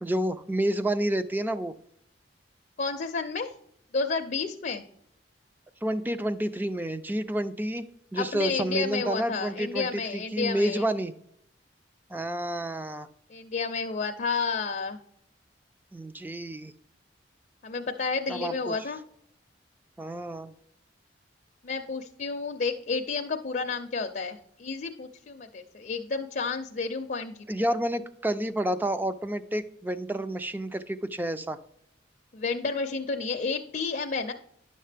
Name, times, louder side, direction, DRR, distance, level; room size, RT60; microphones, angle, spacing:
voice 1, 0.0-1.7 5.8-7.8 8.1-11.1 12.1-13.1 15.9-16.7 18.3-18.7 20.0-20.5 27.5-31.6, right 1 dB, 10° right, 12 dB, 0.3 m, -29 dB
voice 2, 2.8-3.5 3.9-4.9 8.2-10.8 13.3-15.0 17.6-19.0 21.6-27.5 32.3-34.3, left 4 dB, 45° left, 5 dB, 0.5 m, -31 dB
10.0 x 6.5 x 3.4 m, 0.72 s
head